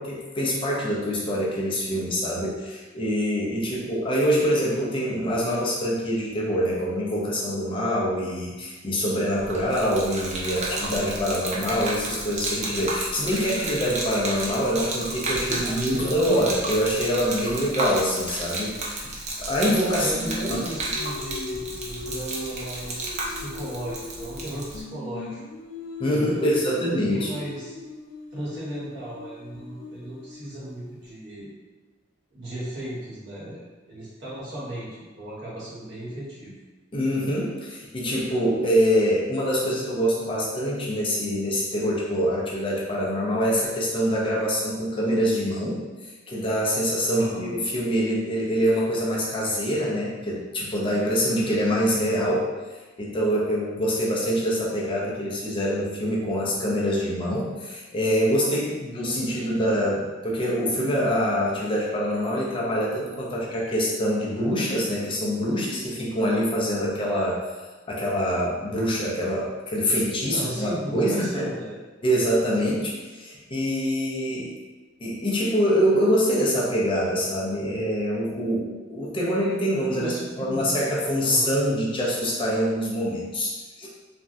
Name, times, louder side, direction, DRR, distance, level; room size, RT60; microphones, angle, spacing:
voice 1, 0.0-20.1 20.5-20.6 26.0-27.3 36.9-67.4 67.9-71.5 72.0-74.5 75.0-83.9, equal, 25° left, -5 dB, 0.5 m, -25 dB
Gurgling / Liquid, 9.3-24.8, right 2 dB, 35° right, 0.4 m, -32 dB
voice 2, 15.4-16.7 20.0-25.4 26.1-26.8 27.1-27.7 28.3-31.5 32.3-36.5 47.1-47.5 70.3-71.8 80.0-80.8 81.2-81.5, right 1 dB, 60° right, -8 dB, 1.2 m, -35 dB
Singing, 20.1-24.5 24.7-30.7, left 3 dB, 85° left, 0.4 m, -39 dB
3.3 x 2.2 x 2.6 m, 1.3 s
head